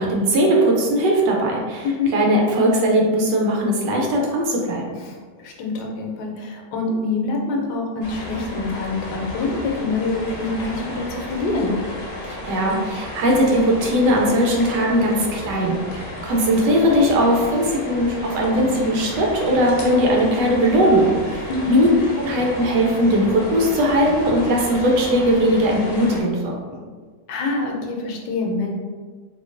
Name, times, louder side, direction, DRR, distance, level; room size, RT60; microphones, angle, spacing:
voice 1, 0.0-1.9 2.1-4.8 12.2-21.9 22.2-26.8, equal, 75° right, -1 dB, 1.2 m, -19 dB
voice 2, 5.0-11.8 21.5-21.9 27.3-28.7, left 3 dB, 75° left, 0 dB, 1.2 m, -25 dB
sound 1, 8.0-26.2, left 1 dB, 55° left, 0.9 m, -33 dB
3.7 x 2.9 x 2.5 m, 1.5 s
omnidirectional pair, 1.9 m